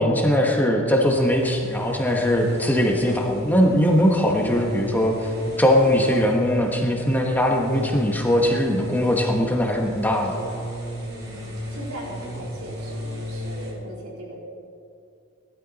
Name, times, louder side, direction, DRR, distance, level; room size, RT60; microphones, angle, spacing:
voice 1, 0.0-5.1 5.6-10.3, equal, 10° left, 1 dB, 1.2 m, -20 dB
sound 1, 1.0-13.7, equal, 50° right, 3.9 m, -35 dB
voice 2, 11.1-14.4, equal, 90° right, -3 dB, 3.5 m, -38 dB
16.5 x 11.5 x 4.1 m, 2.5 s
head